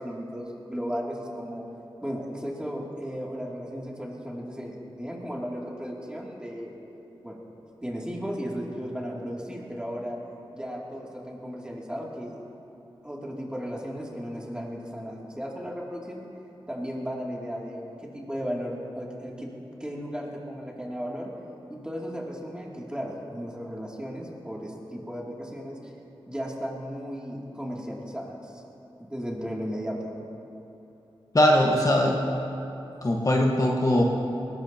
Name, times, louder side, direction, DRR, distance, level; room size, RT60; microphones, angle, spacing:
voice 1, 0.0-1.6 2.0-6.7 7.2-7.4 7.8-10.2 10.5-12.4 13.0-16.2 16.7-19.5 19.8-21.3 21.7-25.9 26.3-28.6 29.0-30.1, equal, 10° right, -3 dB, 2.7 m, -35 dB
voice 2, 31.3-32.2 33.0-34.0, left 1 dB, 35° left, -1 dB, 1.4 m, -21 dB
20.5 x 18.0 x 2.9 m, 2.9 s
wide cardioid pair, 80°, 10 cm